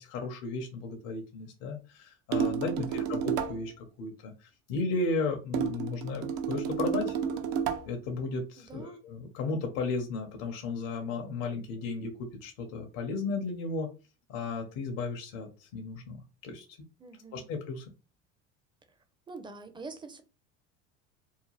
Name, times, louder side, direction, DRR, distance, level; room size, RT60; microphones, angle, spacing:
voice 1, 0.0-4.3 4.7-7.1 7.9-13.9 14.3-16.2 16.4-16.6 17.3-17.9, left 3 dB, 65° left, 0.8 m, -34 dB
sound 1, 2.3-3.7 5.5-7.9, right 7 dB, 55° right, 0.6 m, -31 dB
voice 2, 2.7-3.2 8.6-9.1 17.0-17.5 19.3-20.2, right 3 dB, 15° right, 0.6 m, -46 dB
2.8 x 2.2 x 3.0 m
hypercardioid pair, 80°, 36 cm